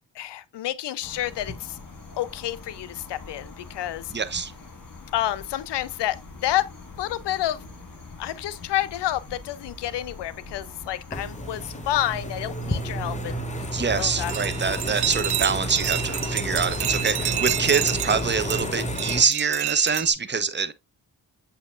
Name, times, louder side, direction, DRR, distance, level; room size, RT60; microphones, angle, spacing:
voice 1, 0.1-1.8 2.2-4.1 5.1-6.7 7.0-7.6 8.2-13.4 14.0-14.3, left 13 dB, 70° left, 0.5 m, -29 dB
sound 1, 1.0-18.7, left 2 dB, 50° left, 1.6 m, -42 dB
voice 2, 4.1-4.5 13.7-20.7, right 5 dB, 25° right, 0.7 m, -25 dB
sound 2, 11.1-19.2, equal, 15° left, 0.8 m, -31 dB
sound 3, 14.0-20.1, right 13 dB, 60° right, 0.5 m, -29 dB
7.8 x 2.8 x 2.4 m
supercardioid pair, 40°, 44 cm